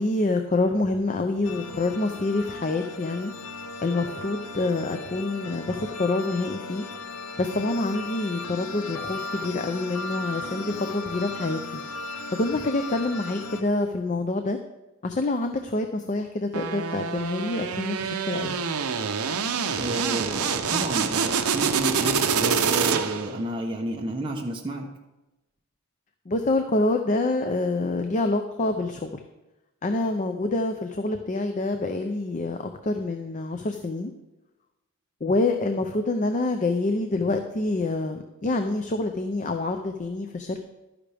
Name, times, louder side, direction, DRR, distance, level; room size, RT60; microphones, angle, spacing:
voice 1, 0.0-3.3 3.8-6.8 7.4-11.8 12.4-14.6 15.0-18.6 26.3-29.2 29.8-34.1 35.2-40.6, left 2 dB, 35° left, 6 dB, 0.6 m, -26 dB
sound 1, 1.4-13.6, left 3 dB, 80° left, 0.8 m, -36 dB
sound 2, 16.5-23.4, right 6 dB, 75° right, 0.7 m, -26 dB
voice 2, 19.8-24.9, right 1 dB, 20° right, 0 dB, 0.9 m, -31 dB
12.0 x 9.9 x 3.5 m, 1.0 s
head